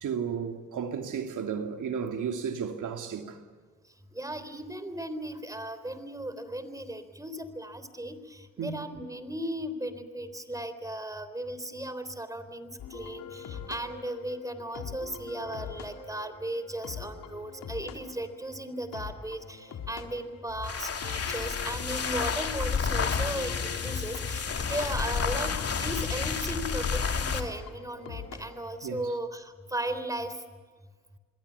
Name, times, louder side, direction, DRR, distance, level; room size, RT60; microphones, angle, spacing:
voice 1, 0.0-3.4 8.6-8.7 28.8-29.1, right 7 dB, 65° right, 2.8 m, -33 dB
voice 2, 4.1-23.5 23.8-30.4, right 1 dB, 10° right, 3.6 m, -36 dB
sound 1, 12.8-28.8, left 7 dB, 80° left, 3.9 m, -43 dB
sound 2, 20.5-27.5, left 5 dB, 45° left, 3.0 m, -30 dB
27.5 x 22.0 x 7.1 m
cardioid pair, 75°, 33 cm